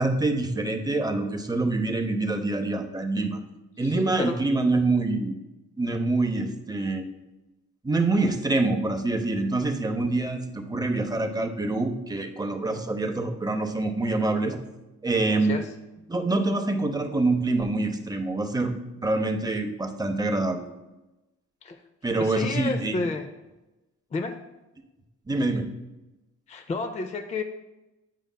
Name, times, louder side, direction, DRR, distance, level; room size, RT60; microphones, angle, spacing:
voice 1, 0.0-3.4 3.8-5.4 5.8-7.0 7.8-14.6 15.0-15.6 16.1-18.7 19.0-20.6 22.0-23.0 25.3-25.7, right 2 dB, 15° right, 5 dB, 0.7 m, -25 dB
voice 2, 15.3-15.7 21.6-21.8 22.2-23.3 24.1-24.4 26.5-27.4, left 3 dB, 25° left, 7 dB, 0.4 m, -30 dB
9.1 x 5.1 x 2.2 m, 1.0 s
cardioid pair, 90°, 30 cm